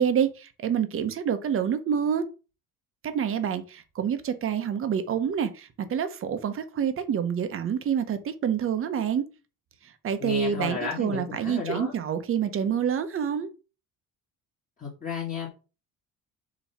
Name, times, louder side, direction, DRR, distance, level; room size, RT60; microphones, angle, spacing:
voice 1, 0.0-2.3 3.0-9.3 9.8-13.5, right 8 dB, 40° right, 1.0 m, -27 dB
voice 2, 10.2-11.9 14.8-15.5, left 5 dB, 25° left, 2.1 m, -33 dB
7.3 x 3.1 x 5.7 m
cardioid pair, 145°, 33 cm